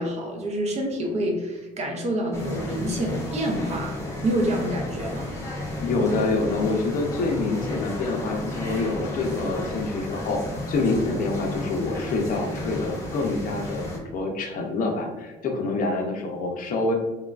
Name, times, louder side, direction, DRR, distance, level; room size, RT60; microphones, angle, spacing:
voice 1, 0.0-4.0 4.2-5.4 16.0-16.1, right 1 dB, 40° right, 1 dB, 0.6 m, -27 dB
sound 1, 2.3-14.0, left 1 dB, 15° left, 0.7 m, -33 dB
voice 2, 5.8-10.4 10.7-16.9, left 3 dB, 55° left, 2 dB, 0.5 m, -26 dB
3.1 x 2.3 x 2.3 m, 1.2 s
cardioid pair, 110°, 17 cm